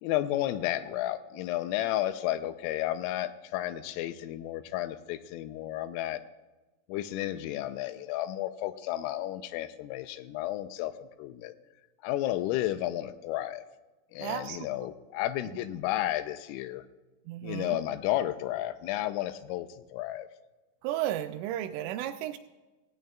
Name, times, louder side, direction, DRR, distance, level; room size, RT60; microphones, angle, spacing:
voice 1, 0.0-6.2 6.9-11.5 12.0-13.6 14.1-16.8 17.4-20.3, left 14 dB, 85° left, 12 dB, 3.1 m, -32 dB
voice 2, 14.2-14.7 17.3-17.8 20.8-22.4, right 12 dB, 85° right, 8 dB, 2.9 m, -33 dB
17.0 x 16.0 x 2.3 m, 1.1 s
omnidirectional pair, 5.9 m